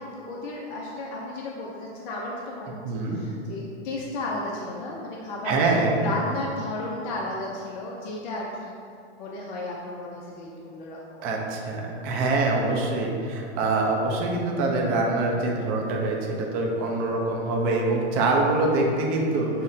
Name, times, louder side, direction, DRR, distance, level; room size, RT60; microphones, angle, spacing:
voice 1, 0.0-2.8 3.1-5.6 6.0-8.7 9.2-11.2 16.7-16.9 19.3-19.6, left 2 dB, 40° left, -3 dB, 0.4 m, -34 dB
voice 2, 2.8-3.2 5.4-6.1 11.2-19.6, right 2 dB, 25° right, -1 dB, 0.4 m, -24 dB
5.5 x 2.1 x 2.6 m, 2.5 s
hypercardioid pair, 135°, 34 cm